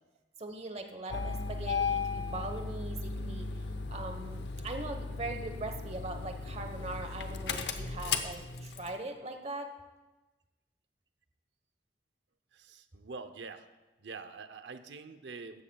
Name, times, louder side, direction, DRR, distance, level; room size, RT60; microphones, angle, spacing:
voice 1, 0.4-3.6 3.9-9.7, right 2 dB, 40° right, 6 dB, 1.1 m, -41 dB
Engine starting, 1.1-9.0, left 4 dB, 75° left, 0.8 m, -36 dB
voice 2, 12.5-13.7 14.0-15.6, right 4 dB, 85° right, 10 dB, 0.7 m, -45 dB
16.0 x 13.0 x 2.3 m, 1.1 s
head